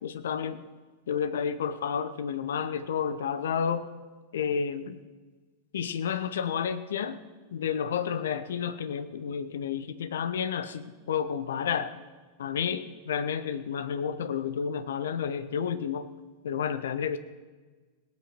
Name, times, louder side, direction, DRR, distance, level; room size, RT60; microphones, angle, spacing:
voice 1, 0.0-0.6 1.1-3.9 4.3-5.0 5.7-7.2 7.5-11.9 12.4-16.1 16.4-17.2, left 7 dB, 60° left, 12 dB, 0.8 m, -31 dB
18.0 x 8.6 x 6.1 m, 1.3 s
figure-of-eight pair, 90°, 0 cm